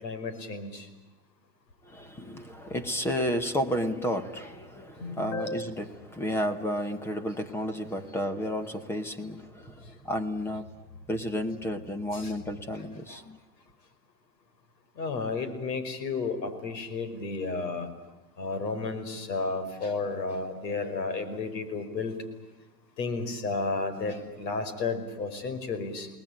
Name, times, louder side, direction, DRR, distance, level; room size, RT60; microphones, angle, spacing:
voice 1, 0.0-0.9 5.0-5.7 12.1-12.3 13.1-13.2 15.0-17.9 18.4-22.2 23.0-26.1, left 4 dB, 85° left, 5.4 m, -32 dB
voice 2, 1.8-10.7 11.1-13.4, equal, 5° left, 0.8 m, -32 dB
29.5 x 20.0 x 8.8 m
supercardioid pair, 160°, 49 cm